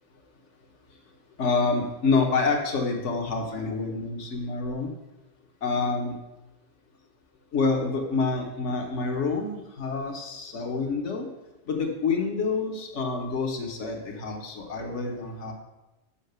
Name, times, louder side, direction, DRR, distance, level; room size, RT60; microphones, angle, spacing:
voice 1, 1.4-4.9 5.6-6.1 7.5-11.3 11.7-15.5, left 4 dB, 85° left, 2 dB, 1.4 m, -27 dB
7.1 x 5.6 x 6.6 m, 1.0 s
omnidirectional pair, 1.2 m